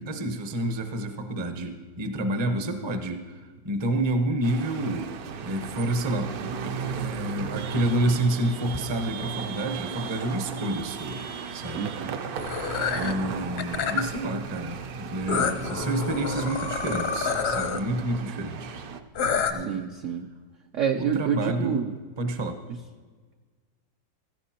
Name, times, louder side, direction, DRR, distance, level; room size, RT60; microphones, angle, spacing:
voice 1, 0.0-5.1 5.4-11.2 11.5-11.9 12.9-18.9 19.5-19.9 21.0-21.8 22.2-22.6, right 1 dB, 35° right, 6 dB, 0.4 m, -29 dB
sound 1, 4.4-19.0, right 6 dB, 65° right, 1.0 m, -36 dB
voice 2, 11.7-12.2 19.5-20.3 20.7-22.0, right 7 dB, 80° right, 5 dB, 0.6 m, -28 dB
sound 2, 12.4-13.1 13.6-14.2 15.3-17.8 19.2-19.5, left 6 dB, 60° left, 0.6 m, -28 dB
16.0 x 14.5 x 2.9 m, 1.5 s
omnidirectional pair, 2.0 m